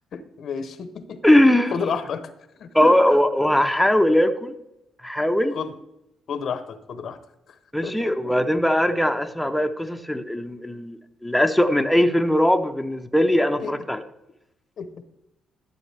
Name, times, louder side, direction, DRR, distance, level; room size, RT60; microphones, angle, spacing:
voice 1, 0.1-1.2 1.7-2.3 2.6-3.0 5.5-5.7 6.3-7.2 7.8-8.3 13.6-13.7 14.8-14.9, left 6 dB, 60° left, 11 dB, 0.8 m, -30 dB
voice 2, 1.2-1.7 2.7-4.5 5.0-5.6 7.7-14.0, left 1 dB, 5° left, 5 dB, 0.6 m, -20 dB
12.0 x 6.9 x 3.3 m, 0.87 s
cardioid pair, 90°, 0 cm